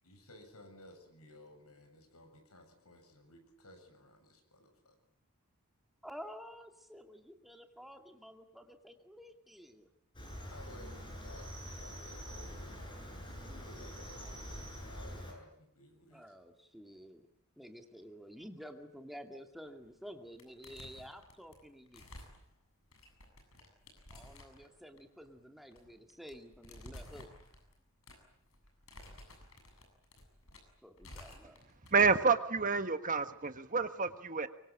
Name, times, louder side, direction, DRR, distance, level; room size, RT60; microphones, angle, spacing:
voice 1, 0.0-5.0 10.5-16.2, left 1 dB, 85° left, 6 dB, 7.3 m, -56 dB
voice 2, 6.0-9.9 16.1-17.2 17.6-22.1 24.1-27.3 30.8-31.6, equal, ahead, 4 dB, 2.3 m, -51 dB
Cricket, 10.1-15.3, equal, 20° left, 7.9 m, -45 dB
sound 1, 19.8-20.1 20.4-32.1, left 1 dB, 70° left, 7.6 m, -54 dB
voice 3, 31.9-34.5, right 4 dB, 35° right, 9 dB, 1.4 m, -29 dB
25.0 x 24.0 x 8.8 m, 0.73 s
head